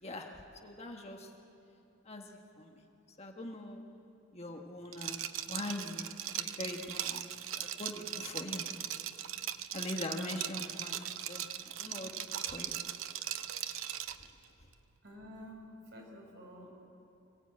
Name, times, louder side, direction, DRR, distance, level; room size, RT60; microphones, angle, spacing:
voice 1, 0.0-1.3 2.0-2.8 3.2-3.8 4.3-7.3 7.6-8.6 9.7-12.8, left 1 dB, 30° left, 2 dB, 1.5 m, -42 dB
Liquid, 4.9-14.3, right 11 dB, 85° right, 0.7 m, -39 dB
voice 2, 15.0-16.7, equal, 60° right, 0 dB, 4.7 m, -50 dB
25.5 x 17.0 x 8.7 m, 2.8 s
head